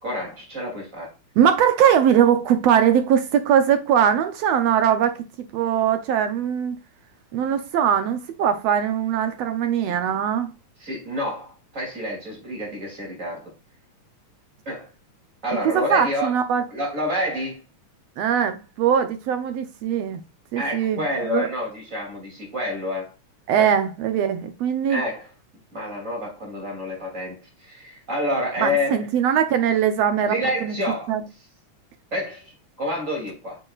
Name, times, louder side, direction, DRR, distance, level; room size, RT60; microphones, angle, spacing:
voice 1, 0.0-1.1 9.8-9.9 10.8-13.5 14.7-14.9 15.4-16.4 16.7-17.6 20.6-23.1 23.6-23.7 24.9-25.3 25.7-29.0 30.3-31.2 32.1-33.6, left 1 dB, 25° right, 2.8 m, -28 dB
voice 2, 1.4-5.2 5.5-6.8 7.3-10.5 15.7-16.7 18.2-20.2 20.5-21.5 23.5-25.0 28.6-30.8 31.1-31.2, right 8 dB, 70° right, 1.7 m, -21 dB
8.5 x 5.5 x 2.4 m
omnidirectional pair, 3.4 m